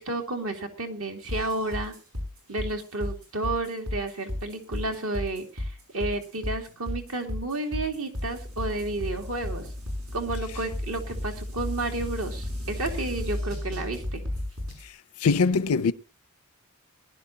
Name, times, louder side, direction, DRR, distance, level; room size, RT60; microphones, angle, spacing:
voice 1, 0.0-2.0 2.5-9.7 10.1-14.2, right 2 dB, 70° right, 2.4 m, -31 dB
sound 1, 1.3-14.9, left 1 dB, 90° right, 6.9 m, -34 dB
voice 2, 15.2-15.9, left 4 dB, 90° left, 0.6 m, -22 dB
20.0 x 11.5 x 2.8 m
head